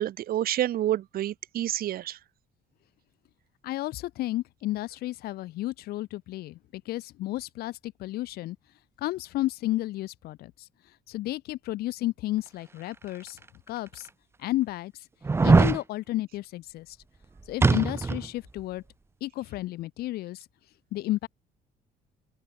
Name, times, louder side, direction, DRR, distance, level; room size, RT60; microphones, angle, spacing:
voice 1, 0.0-2.2, right 12 dB, 60° right, 1.3 m, -28 dB
voice 2, 3.6-8.6 9.0-10.7 11.1-13.4 13.7-14.1 14.4-14.9 15.4-17.0 17.5-18.8 19.2-20.4 20.9-21.3, left 16 dB, 65° left, 0.5 m, -32 dB
sound 1, 13.3-13.4 14.0-14.1 15.2-15.8 17.6-18.3 18.6-18.7, right 4 dB, 15° right, 0.5 m, -20 dB
open air
cardioid pair, 110°, 17 cm